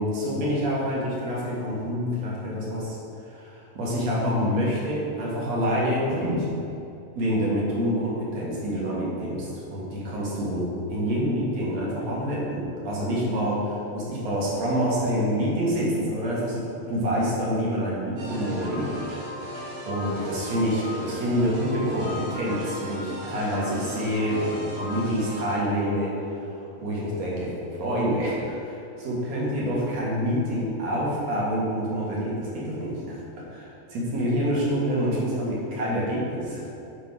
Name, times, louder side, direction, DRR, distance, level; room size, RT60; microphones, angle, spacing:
voice 1, 0.0-3.0 3.2-6.5 7.2-19.2 19.9-33.2 33.5-36.7, equal, 55° right, -6 dB, 2.7 m, -27 dB
sound 1, 18.2-25.5, equal, 75° right, 3.7 m, -36 dB
9.6 x 4.1 x 6.2 m, 2.8 s
omnidirectional pair, 4.1 m